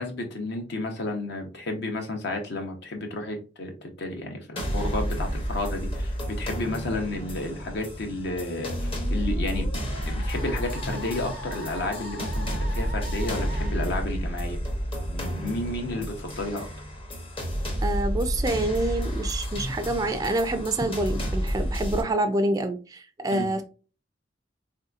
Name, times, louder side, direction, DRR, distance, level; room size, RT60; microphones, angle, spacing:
voice 1, 0.0-9.7 10.1-14.6 15.1-16.7 23.3-23.5, left 2 dB, 65° left, 0.8 m, -32 dB
sound 1, 4.6-22.0, equal, 30° left, 0.8 m, -30 dB
Musical instrument, 8.5-13.7, equal, 85° left, 1.2 m, -41 dB
voice 2, 17.8-23.6, right 1 dB, 20° right, 0.3 m, -27 dB
3.4 x 2.8 x 2.3 m
head